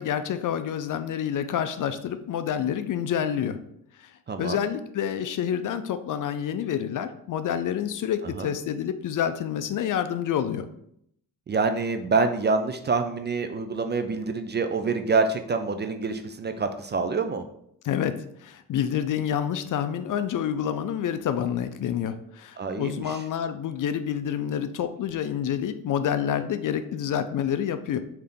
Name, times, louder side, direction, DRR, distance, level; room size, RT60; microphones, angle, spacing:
voice 1, 0.0-3.6 4.0-4.1 4.4-10.7 17.8-28.0, left 9 dB, 55° left, 10 dB, 0.5 m, -28 dB
voice 2, 4.3-4.6 8.4-8.5 11.5-17.4 22.6-23.2, right 4 dB, 30° right, 7 dB, 0.4 m, -26 dB
3.3 x 2.8 x 3.7 m, 0.71 s
supercardioid pair, 55°, 40 cm